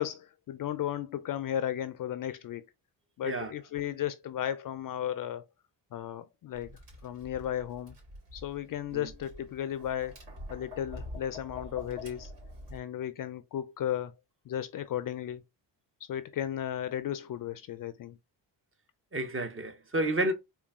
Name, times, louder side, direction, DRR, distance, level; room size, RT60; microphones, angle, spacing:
voice 1, 0.0-2.7 3.2-5.4 5.9-6.7 7.0-8.0 8.3-10.1 10.5-12.3 12.7-14.1 14.5-15.4 16.0-18.2, left 10 dB, 50° left, 0.4 m, -34 dB
Tap, 6.5-12.8, left 1 dB, 65° right, 2.2 m, -46 dB
voice 2, 19.1-20.3, right 1 dB, 30° right, 0.8 m, -30 dB
3.8 x 2.3 x 3.5 m
cardioid pair, 75°, 45 cm